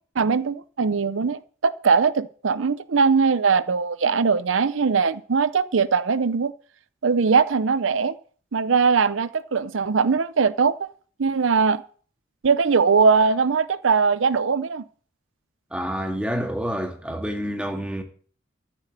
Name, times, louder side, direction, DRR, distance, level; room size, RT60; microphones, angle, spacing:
voice 1, 0.2-6.5 7.0-8.1 8.5-10.9 11.2-11.8 12.4-14.8, right 5 dB, 80° right, 0.6 m, -21 dB
voice 2, 15.7-18.0, equal, 5° right, 1.9 m, -28 dB
14.0 x 7.7 x 7.5 m
head